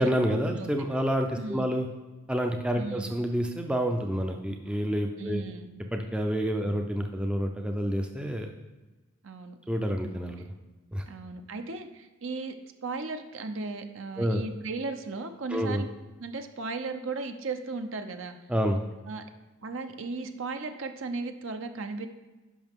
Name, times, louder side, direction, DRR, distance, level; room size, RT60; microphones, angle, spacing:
voice 1, 0.0-1.9 2.3-5.4 5.9-8.5 9.7-10.4 10.9-11.0 14.2-14.4 15.5-15.8 18.5-18.8, equal, 5° right, 3 dB, 0.4 m, -28 dB
voice 2, 1.3-1.7 2.7-3.1 5.2-5.8 6.6-6.8 9.2-9.6 11.1-12.5 12.8-15.9 16.2-18.3 19.1-19.2 19.6-22.1, right 3 dB, 65° right, 7 dB, 0.7 m, -36 dB
11.0 x 5.6 x 3.6 m, 1.2 s
head